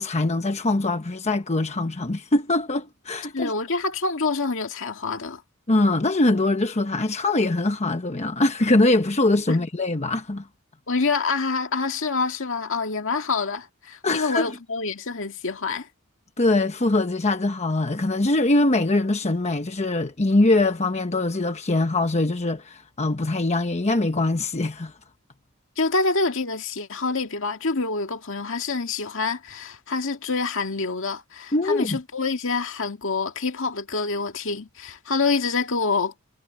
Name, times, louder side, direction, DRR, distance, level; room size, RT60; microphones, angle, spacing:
voice 1, 0.0-3.5 5.7-10.4 14.0-14.5 16.4-24.9 31.5-32.0, left 2 dB, 30° left, 1.0 m, -22 dB
voice 2, 3.3-5.4 9.5-9.7 10.9-15.9 25.8-36.1, left 4 dB, 65° left, 2.0 m, -26 dB
head